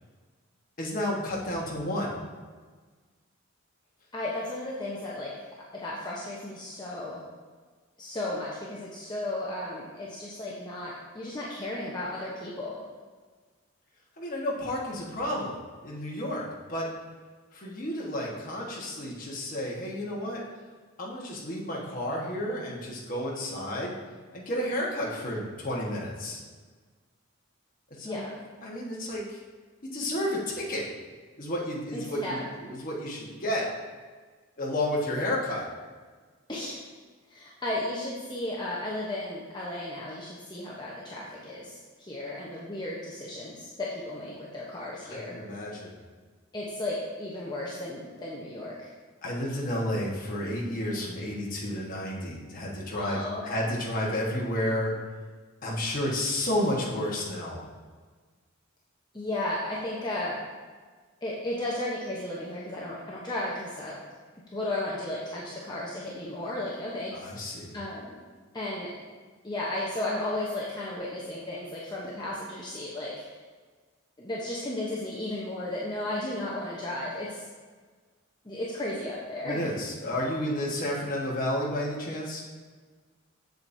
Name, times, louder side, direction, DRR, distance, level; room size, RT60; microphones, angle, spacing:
voice 1, 0.8-2.2 14.2-15.5 15.8-16.9 17.5-20.4 21.0-23.9 24.3-26.4 28.0-28.2 28.6-29.4 29.9-30.9 31.4-33.7 34.6-35.7 45.0-45.9 49.2-54.9 55.6-57.6 67.1-67.8 79.4-82.4, left 1 dB, 40° left, -4 dB, 1.3 m, -31 dB
voice 2, 4.1-5.3 5.7-7.2 8.0-12.8 28.0-28.4 31.9-32.5 36.5-36.8 37.3-45.4 46.5-48.9 52.9-53.6 59.1-60.4 61.2-64.0 64.5-67.5 67.7-68.2 68.5-68.9 69.4-73.1 74.2-77.4 78.4-79.6, left 1 dB, 20° left, -6 dB, 0.8 m, -34 dB
7.7 x 7.2 x 2.7 m, 1.4 s
head